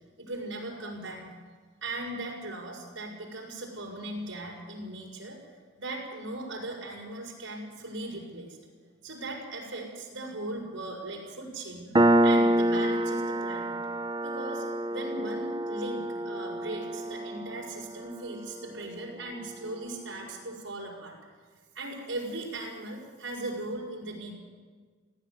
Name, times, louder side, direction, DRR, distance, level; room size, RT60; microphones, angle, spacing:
voice 1, 0.2-1.3 1.8-5.4 5.8-8.6 9.0-13.7 14.2-21.1 21.7-24.3, right 2 dB, 85° right, -3 dB, 5.8 m, -38 dB
Piano, 12.0-19.1, right 1 dB, 20° right, 0.7 m, -27 dB
19.0 x 15.5 x 9.8 m, 1.5 s
head